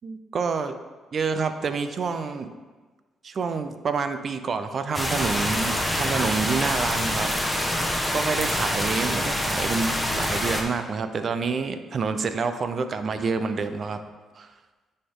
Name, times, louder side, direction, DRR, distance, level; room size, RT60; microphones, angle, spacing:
voice 1, 0.0-0.8 1.1-2.5 3.2-7.8 8.1-14.0 14.4-14.5, right 5 dB, 50° right, 9 dB, 0.6 m, -28 dB
sound 1, 4.9-10.6, left 1 dB, 5° left, 1.0 m, -26 dB
9.7 x 4.3 x 3.8 m, 1.3 s
cardioid pair, 90°, 0 cm